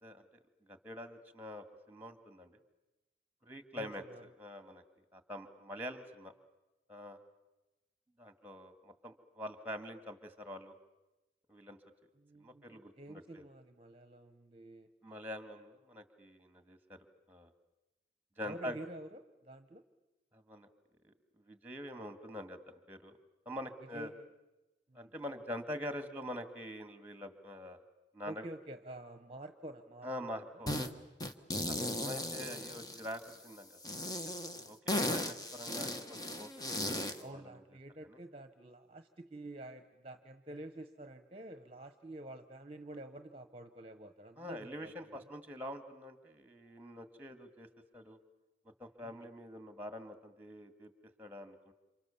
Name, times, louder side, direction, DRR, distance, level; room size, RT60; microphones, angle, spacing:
voice 1, 0.6-2.5 3.4-4.0 4.4-4.8 5.1-6.3 6.9-7.2 8.2-10.7 11.5-11.8 12.4-13.5 15.0-17.5 18.4-18.8 20.3-20.7 21.0-23.2 23.5-24.1 24.9-27.8 28.1-28.5 30.0-30.9 31.7-34.2 34.6-34.8 35.1-37.6 38.0-38.2 44.4-47.7 47.9-48.2 48.6-50.9 51.2-51.7, equal, 10° right, 8 dB, 1.9 m, -45 dB
voice 2, 3.7-4.2 12.2-14.9 18.4-19.8 23.9-24.3 24.9-25.1 28.2-30.7 31.6-32.6 37.2-45.3 49.0-49.3, right 1 dB, 30° right, 8 dB, 1.1 m, -49 dB
sound 1, 30.7-30.9 31.2-33.3 33.8-37.2, left 1 dB, 20° left, 1.3 m, -37 dB
29.5 x 27.5 x 7.1 m, 1.0 s
head